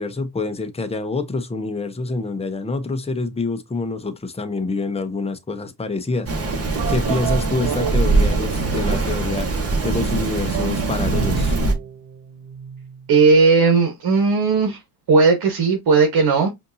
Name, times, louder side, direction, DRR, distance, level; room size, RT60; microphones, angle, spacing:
voice 1, 0.0-6.3 6.9-9.5 9.8-11.5, left 3 dB, 15° left, 0.8 m, -26 dB
Rain, 6.3-11.7, right 3 dB, 30° right, 1.4 m, -22 dB
sound 1, 6.7-9.0 9.8-13.1, right 8 dB, 70° right, 1.2 m, -30 dB
voice 2, 13.1-14.8 15.1-16.5, right 4 dB, 50° right, 1.5 m, -16 dB
5.1 x 2.8 x 2.7 m
supercardioid pair, 65°, 47 cm